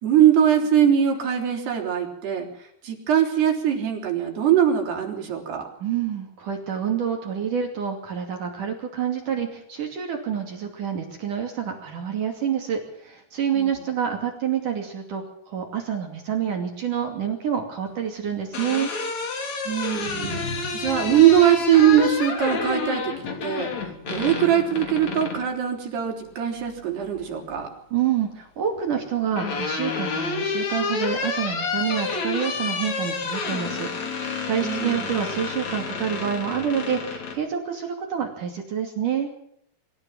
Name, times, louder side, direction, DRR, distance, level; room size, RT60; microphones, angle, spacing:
voice 1, 0.0-2.5 2.8-5.7 13.5-13.8 19.7-23.1 23.4-27.7 34.6-35.1, right 10 dB, 80° right, 1 dB, 6.0 m, -21 dB
voice 2, 5.8-18.9 27.9-39.3, right 8 dB, 55° right, 3 dB, 4.0 m, -28 dB
sound 1, 18.2-25.5 27.0-27.6 28.9-37.4, left 4 dB, 45° left, 4.0 m, -29 dB
sound 2, 19.9-24.6 24.8-25.1 25.6-25.7, left 3 dB, 90° left, 9.2 m, -41 dB
25.5 x 13.5 x 7.6 m, 0.72 s
omnidirectional pair, 4.6 m